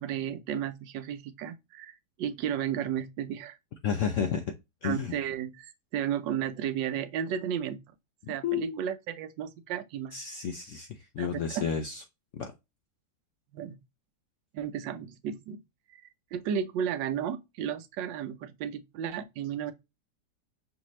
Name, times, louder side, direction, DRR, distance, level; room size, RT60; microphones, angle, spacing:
voice 1, 0.0-3.6 4.8-7.8 8.3-10.2 11.2-11.6 13.5-13.8 14.5-15.6 15.9-16.0 16.3-19.7, right 9 dB, 85° right, 1.3 m, -33 dB
voice 2, 3.8-4.5 4.8-5.1 8.2-8.8 10.1-12.0 12.3-12.5, left 7 dB, 75° left, 0.7 m, -31 dB
5.8 x 2.7 x 3.1 m
omnidirectional pair, 1.9 m